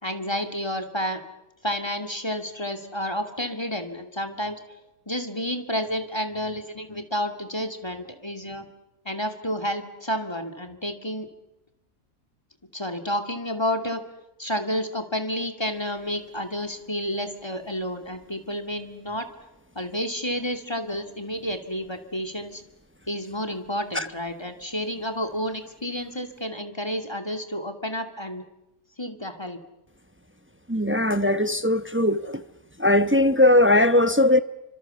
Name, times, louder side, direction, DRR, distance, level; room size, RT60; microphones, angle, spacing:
voice 1, 0.0-1.2 1.6-4.6 5.1-8.6 9.0-11.3 12.7-14.0 14.4-19.3 19.7-22.6 23.1-28.4 29.0-29.6, equal, 15° left, 2.5 m, -30 dB
voice 2, 30.7-32.4 32.8-34.4, left 1 dB, 10° right, 0.8 m, -19 dB
30.0 x 25.5 x 7.1 m
omnidirectional pair, 1.5 m